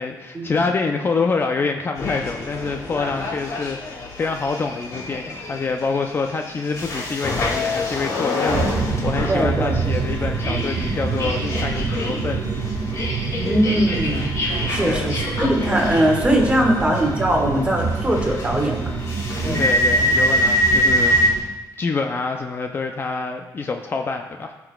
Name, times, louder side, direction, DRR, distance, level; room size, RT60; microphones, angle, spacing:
voice 1, 0.0-12.4 14.8-15.1 19.6-24.5, left 4 dB, 30° left, 4 dB, 0.4 m, -26 dB
sound 1, 2.0-21.3, left 1 dB, 50° left, 2.0 m, -26 dB
sound 2, 8.5-21.4, right 4 dB, 70° right, 0.9 m, -27 dB
voice 2, 9.3-9.8 13.4-14.3 14.7-18.8 19.4-19.6, right 1 dB, 15° right, 1 dB, 1.5 m, -20 dB
16.5 x 5.9 x 2.3 m, 1.1 s
cardioid pair, 145°, 7 cm